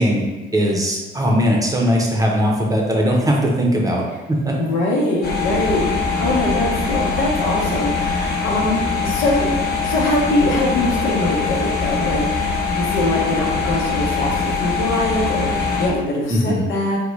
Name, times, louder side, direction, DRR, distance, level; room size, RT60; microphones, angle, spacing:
voice 1, 0.0-4.6 16.3-16.6, equal, 15° right, -1 dB, 0.7 m, -19 dB
voice 2, 4.6-5.9 6.2-9.5 9.8-17.0, left 2 dB, 85° left, -3 dB, 0.8 m, -22 dB
sound 1, 5.2-15.9, left 4 dB, 50° left, 1.0 m, -22 dB
3.7 x 2.2 x 3.1 m, 1.1 s
cardioid pair, 90°, 20 cm